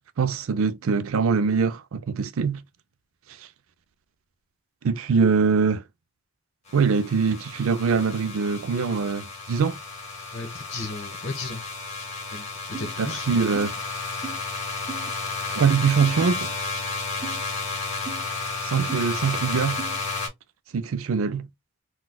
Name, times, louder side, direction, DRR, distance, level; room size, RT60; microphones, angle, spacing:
voice 1, 0.2-2.6 4.8-5.8 6.7-9.8 13.0-13.7 15.5-16.5 18.6-19.8 20.7-21.5, right 5 dB, 70° right, 0.4 m, -23 dB
sound 1, 6.7-20.3, left 4 dB, 30° left, 1.4 m, -32 dB
voice 2, 10.3-11.6 12.3-13.3, left 3 dB, 55° left, 1.1 m, -35 dB
sound 2, 12.7-12.9 13.5-13.7 14.2-14.4 14.9-15.1 16.0-16.2 17.2-17.4 18.0-18.2 18.9-19.0 19.8-20.0, right 5 dB, 20° right, 0.5 m, -36 dB
4.0 x 2.3 x 2.2 m
head